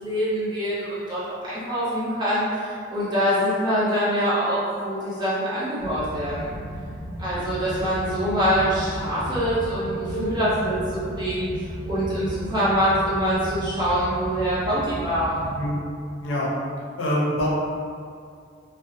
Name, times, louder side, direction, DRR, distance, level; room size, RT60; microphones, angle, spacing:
voice 1, 0.0-6.5 7.2-15.4, equal, 20° right, -11 dB, 0.7 m, -24 dB
sound 1, 5.8-15.6, equal, 75° right, 0.6 m, -35 dB
voice 2, 10.1-10.5 15.6-15.8 16.2-16.5 17.0-17.5, equal, 75° left, -5 dB, 0.6 m, -25 dB
2.5 x 2.0 x 2.6 m, 2.3 s
head